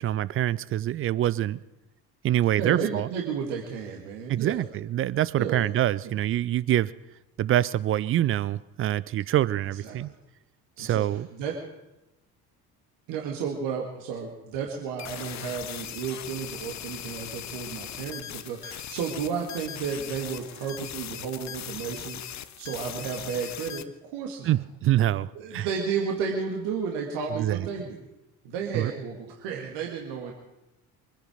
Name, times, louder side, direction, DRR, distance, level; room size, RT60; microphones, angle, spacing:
voice 1, 0.0-1.6 2.2-3.1 4.3-6.9 7.4-10.1 10.8-11.3 24.4-25.7 27.4-27.7 28.7-28.9, right 13 dB, 30° right, 0.4 m, -25 dB
voice 2, 2.6-4.6 5.4-5.6 6.0-6.2 9.8-10.1 10.8-11.6 13.1-24.5 25.3-28.1 28.4-30.3, right 6 dB, 55° right, 2.2 m, -33 dB
sound 1, 15.0-23.8, left 10 dB, 35° left, 0.9 m, -39 dB
24.0 x 10.0 x 5.2 m
figure-of-eight pair, 55°, 48 cm